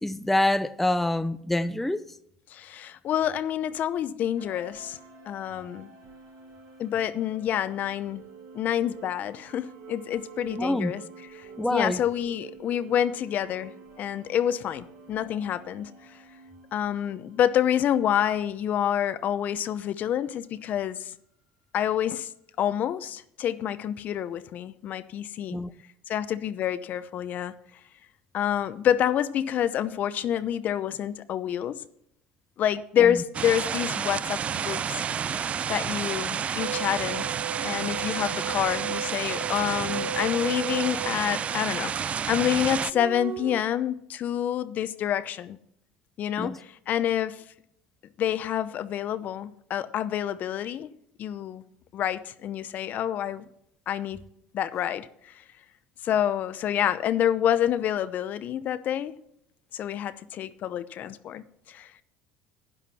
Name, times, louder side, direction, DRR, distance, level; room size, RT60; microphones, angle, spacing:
voice 1, 0.0-2.0 10.6-10.9 11.6-12.0 25.5-25.7 33.1-33.2 46.4-46.6, left 1 dB, 5° left, 0.6 m, -26 dB
voice 2, 2.5-5.0 5.3-5.9 6.8-8.2 8.5-11.0 11.3-15.9 16.7-21.1 21.7-22.3 22.6-25.6 26.1-27.5 28.3-31.8 32.6-35.0 35.7-37.3 37.6-45.6 46.2-47.4 48.2-50.9 51.2-51.6 51.9-53.5 53.9-54.2 54.5-55.4 56.0-59.1 59.7-61.9, left 10 dB, 50° left, 0.7 m, -28 dB
sound 1, 4.4-18.5, right 5 dB, 75° right, 5.5 m, -48 dB
sound 2, 33.3-42.9, right 7 dB, 35° right, 0.4 m, -30 dB
sound 3, 36.6-42.1 42.9-43.6, right 8 dB, 60° right, 0.9 m, -36 dB
11.0 x 11.0 x 4.2 m
supercardioid pair, 85°, 4 cm